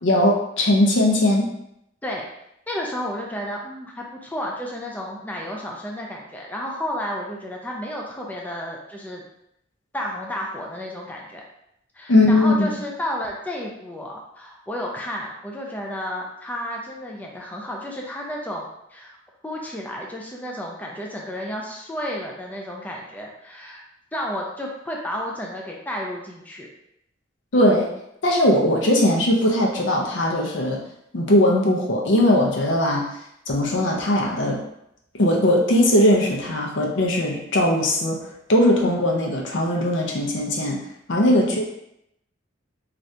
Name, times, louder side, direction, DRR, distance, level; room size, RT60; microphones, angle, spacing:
voice 1, 0.0-1.5 12.1-12.7 27.5-27.9 28.2-30.8 31.1-33.1 33.5-34.6 35.1-38.2 38.5-40.8 41.1-41.6, left 1 dB, 70° left, -1 dB, 0.6 m, -19 dB
voice 2, 2.7-9.2 9.9-11.4 11.9-19.2 19.4-23.8 24.1-26.7 41.3-41.5, equal, 10° left, -2 dB, 0.4 m, -32 dB
2.7 x 2.5 x 3.3 m, 0.79 s
head